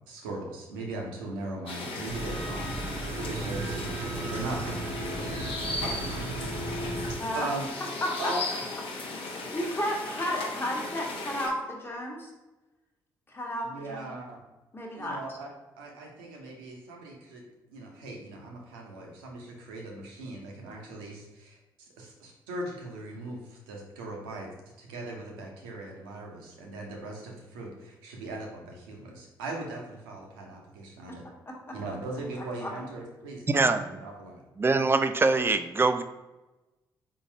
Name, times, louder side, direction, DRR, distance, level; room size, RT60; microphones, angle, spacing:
voice 1, 0.1-5.2 5.7-6.5 7.3-7.7 8.2-8.4 13.6-14.4 14.9-15.5 15.8-17.4 17.7-24.5 24.8-31.2 31.7-34.4, right 2 dB, 80° right, 0 dB, 0.8 m, -39 dB
sound 1, 1.7-11.5, left 3 dB, 60° left, 0.9 m, -36 dB
sound 2, 2.1-7.2, right 2 dB, 55° right, 0.8 m, -35 dB
voice 2, 7.2-7.5 8.0-8.3 9.1-12.3 13.3-14.2 14.7-15.2 31.1-31.2 31.5-31.7 32.6-32.7, equal, 20° left, -1 dB, 1.1 m, -33 dB
voice 3, 33.5-33.8 34.6-36.0, right 3 dB, 20° right, 9 dB, 0.4 m, -23 dB
4.1 x 3.8 x 2.7 m, 1.1 s
hypercardioid pair, 40°, 11 cm